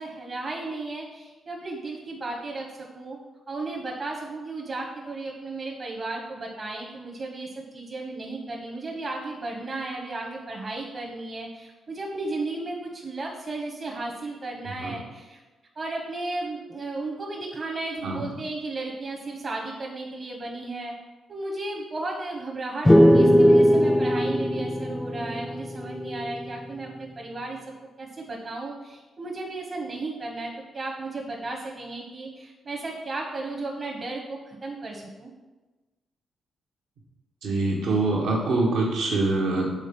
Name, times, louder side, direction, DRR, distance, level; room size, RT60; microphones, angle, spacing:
voice 1, 0.0-3.2 3.5-15.4 15.7-20.9 21.3-27.6 28.0-35.3, right 2 dB, 50° right, -1 dB, 1.2 m, -34 dB
voice 2, 18.0-18.3 37.4-39.7, right 2 dB, 75° right, -2 dB, 1.4 m, -24 dB
sound 1, 22.9-26.4, equal, 15° left, 0.6 m, -19 dB
6.4 x 3.8 x 5.3 m, 1.2 s
supercardioid pair, 50°, 0 cm